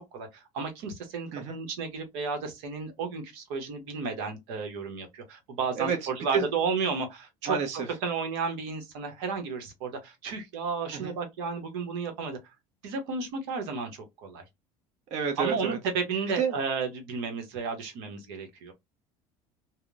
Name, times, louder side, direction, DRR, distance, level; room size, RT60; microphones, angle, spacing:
voice 1, 0.1-7.6 8.0-12.5 12.8-14.4 15.4-18.7, right 5 dB, 80° right, 0.9 m, -33 dB
voice 2, 7.5-7.9 10.9-11.1 15.1-15.8 16.4-16.5, right 6 dB, 55° right, 0.7 m, -29 dB
2.8 x 2.0 x 2.4 m
supercardioid pair, 100°, 14 cm